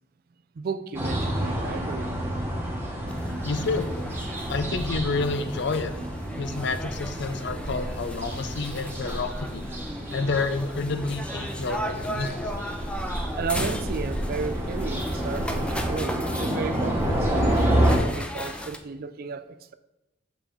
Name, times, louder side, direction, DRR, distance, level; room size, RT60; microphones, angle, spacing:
voice 1, 0.6-2.1 13.0-13.1 13.4-19.7, right 5 dB, 50° right, 0.4 m, -34 dB
sound 1, 0.9-18.0, equal, 15° right, 1.1 m, -29 dB
sound 2, 3.1-18.8, equal, 5° left, 0.4 m, -37 dB
voice 2, 3.4-3.9 4.5-5.9 6.4-9.7 10.1-12.3, left 3 dB, 65° left, 0.5 m, -29 dB
6.9 x 4.8 x 3.7 m
head